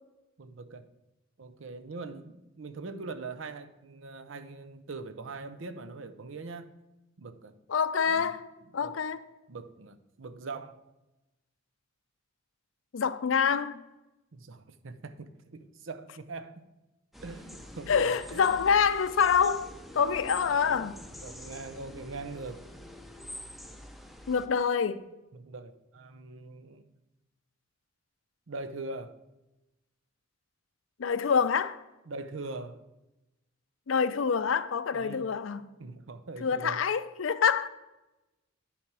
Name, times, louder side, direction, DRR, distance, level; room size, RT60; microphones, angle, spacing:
voice 1, 0.4-0.9 1.4-6.8 7.2-7.5 8.1-8.3 8.8-9.0 9.5-10.8 14.3-16.6 17.2-18.6 20.4-20.9 21.2-22.7 25.3-26.9 28.5-29.2 32.1-32.8 34.9-35.3 35.8-36.8, right 3 dB, 70° right, 0.7 m, -42 dB
voice 2, 7.7-8.4 8.7-9.2 12.9-13.8 17.9-19.7 19.9-21.0 24.3-25.1 31.0-31.8 33.9-35.7 36.4-37.7, left 6 dB, 70° left, 0.5 m, -26 dB
sound 1, 17.1-24.5, equal, ahead, 0.6 m, -46 dB
10.0 x 5.1 x 4.7 m
head